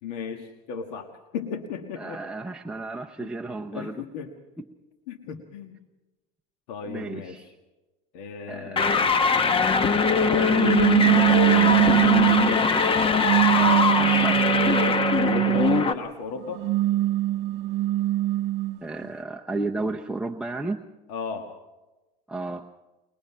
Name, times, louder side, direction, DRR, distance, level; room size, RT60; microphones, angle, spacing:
voice 1, 0.0-2.2 3.2-3.3 3.7-4.3 5.1-5.7 6.7-7.4 8.1-9.1 10.0-10.7 15.5-16.6 21.1-21.5, left 5 dB, 80° left, 5 dB, 1.7 m, -36 dB
voice 2, 2.0-4.0 4.6-4.7 6.8-7.6 8.5-8.9 10.4-12.9 13.5-14.4 18.8-20.8 22.3-22.7, right 2 dB, 5° right, 0 dB, 0.7 m, -33 dB
sound 1, 8.8-15.9, left 5 dB, 25° left, 1.1 m, -21 dB
sound 2, 10.6-12.6 13.2-15.9 16.5-18.8, right 17 dB, 60° right, 0.7 m, -22 dB
22.0 x 21.5 x 5.6 m, 1.1 s
supercardioid pair, 125°, 21 cm